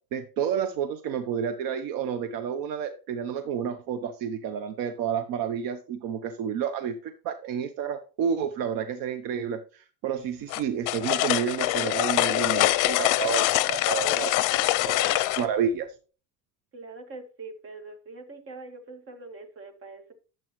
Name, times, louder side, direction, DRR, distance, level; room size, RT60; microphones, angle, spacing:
voice 1, 0.1-14.3 14.9-15.9, right 8 dB, 70° right, 10 dB, 0.9 m, -30 dB
sound 1, 10.5-15.5, left 17 dB, 60° left, 0.6 m, -24 dB
voice 2, 16.7-20.1, right 3 dB, 40° right, 6 dB, 1.8 m, -43 dB
10.5 x 7.7 x 3.1 m, 0.36 s
cardioid pair, 140°, 36 cm